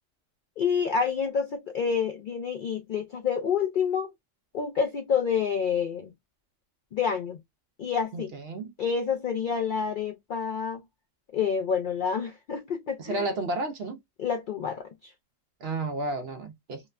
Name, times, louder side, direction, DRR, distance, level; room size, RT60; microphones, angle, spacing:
voice 1, 0.6-4.1 4.5-6.1 6.9-7.4 7.8-8.3 8.8-10.8 11.3-13.3 14.2-15.1, left 6 dB, 65° left, 0.5 m, -28 dB
voice 2, 8.1-8.7 13.0-14.0 15.6-16.8, right 2 dB, 60° right, 0.7 m, -32 dB
2.9 x 2.1 x 2.3 m
omnidirectional pair, 1.4 m